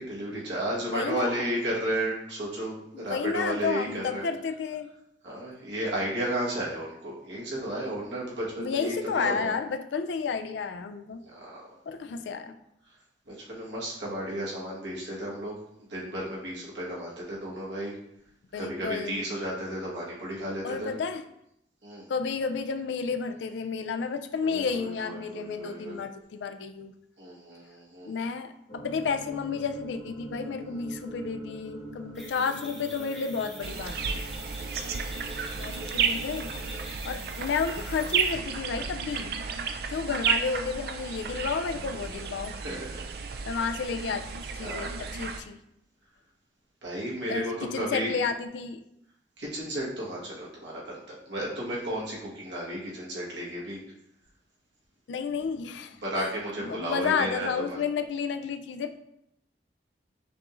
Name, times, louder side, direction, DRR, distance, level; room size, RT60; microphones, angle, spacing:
voice 1, 0.0-4.3 5.2-9.5 11.3-11.8 13.3-15.6 15.9-18.0 18.6-20.9 21.8-22.0 24.4-26.0 27.2-28.1 34.6-35.5 42.6-43.0 44.6-44.9 46.8-48.1 49.4-53.8 56.0-57.8, right 1 dB, 80° right, -4 dB, 1.3 m, -33 dB
voice 2, 0.8-1.5 2.9-4.9 8.6-11.2 11.9-12.6 18.5-19.2 20.6-21.2 22.1-26.9 28.0-34.2 35.6-36.5 37.0-39.3 39.9-42.5 43.4-44.3 44.5-45.6 47.3-48.8 55.1-56.3 56.6-59.0, left 5 dB, 80° left, 9 dB, 0.3 m, -31 dB
sound 1, 28.7-36.9, right 1 dB, 35° left, 1.1 m, -44 dB
sound 2, 32.2-38.3, left 1 dB, ahead, 0.8 m, -45 dB
sound 3, 33.6-45.4, right 6 dB, 55° right, 0.3 m, -32 dB
5.8 x 3.1 x 2.4 m, 0.78 s
head